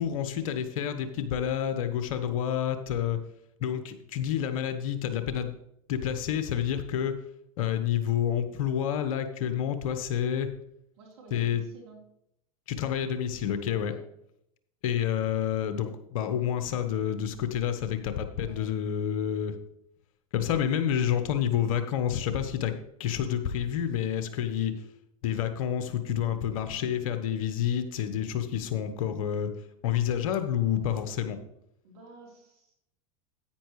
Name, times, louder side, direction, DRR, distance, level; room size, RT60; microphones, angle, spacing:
voice 1, 0.0-3.2 3.6-5.6 5.9-7.2 7.6-10.5 11.3-11.6 12.7-13.9 14.8-19.6 20.3-22.7 23.0-24.7 25.2-29.5 29.8-31.4, left 9 dB, 65° left, 9 dB, 1.1 m, -29 dB
voice 2, 11.0-12.0 13.7-14.0 18.5-18.6 31.8-32.7, right 2 dB, 65° right, -1 dB, 3.7 m, -51 dB
10.0 x 9.1 x 3.2 m, 0.77 s
hypercardioid pair, 90°, 19 cm